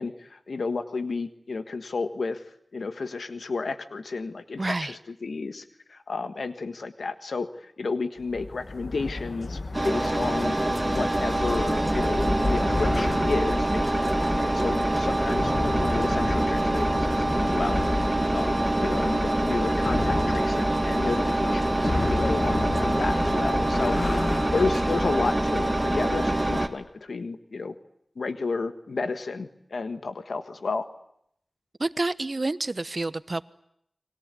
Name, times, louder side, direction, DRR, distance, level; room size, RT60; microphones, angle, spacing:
voice 1, 0.0-2.4 2.7-10.6 10.9-27.7 28.2-30.9, left 4 dB, 90° left, 9 dB, 1.5 m, -32 dB
voice 2, 4.6-5.0 31.8-33.4, right 2 dB, 45° right, 14 dB, 1.1 m, -28 dB
sound 1, 8.2-25.1, left 3 dB, 60° left, 1.3 m, -33 dB
Engine, 9.7-26.7, right 1 dB, 20° right, 2.4 m, -25 dB
30.0 x 23.0 x 8.3 m, 0.74 s
wide cardioid pair, 65°, 0 cm